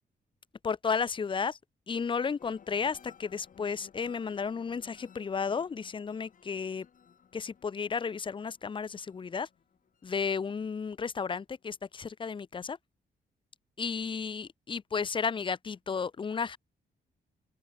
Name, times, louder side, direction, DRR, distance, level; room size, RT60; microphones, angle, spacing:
voice 1, 0.6-1.6 1.9-6.9 7.3-9.5 10.0-12.8 13.8-16.6, left 5 dB, 30° left, 0.7 m, -33 dB
sound 1, 2.4-11.2 11.6-12.1, left 7 dB, 50° left, 5.4 m, -59 dB
open air
wide cardioid pair, 150°, 17 cm